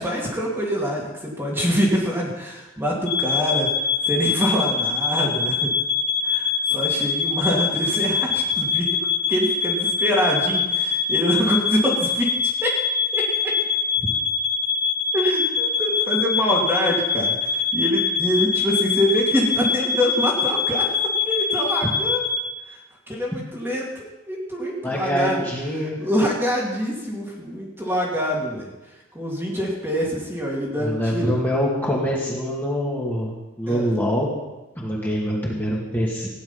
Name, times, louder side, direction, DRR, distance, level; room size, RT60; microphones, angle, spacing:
voice 1, 0.0-3.7 4.0-5.7 6.2-8.9 9.3-12.7 13.1-13.2 15.1-20.8 21.3-22.2 22.7-22.8 23.1-25.4 25.8-28.7 29.1-31.3 33.7-33.9, equal, 10° right, -4 dB, 2.4 m, -25 dB
sound 1, 3.1-22.4, left 5 dB, 65° left, 2.7 m, -24 dB
voice 2, 24.8-26.0 30.8-34.3 34.8-36.3, equal, 10° left, -4 dB, 2.5 m, -24 dB
16.5 x 10.5 x 5.7 m, 1.1 s
head